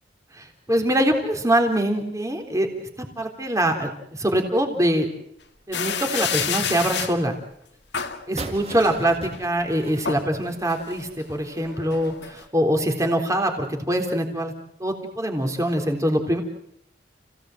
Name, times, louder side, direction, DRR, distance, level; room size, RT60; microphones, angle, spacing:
voice 1, 0.4-5.1 5.7-7.3 8.3-14.5 14.8-16.4, right 1 dB, 15° right, 4 dB, 3.5 m, -24 dB
sound 1, 5.7-7.2 7.9-8.2 8.8-9.4 9.8-10.3 10.7-12.4, left 7 dB, 65° left, 1.9 m, -29 dB
sound 2, 8.4-11.1, right 2 dB, 35° right, 3.0 m, -38 dB
30.0 x 17.5 x 7.8 m, 0.75 s
head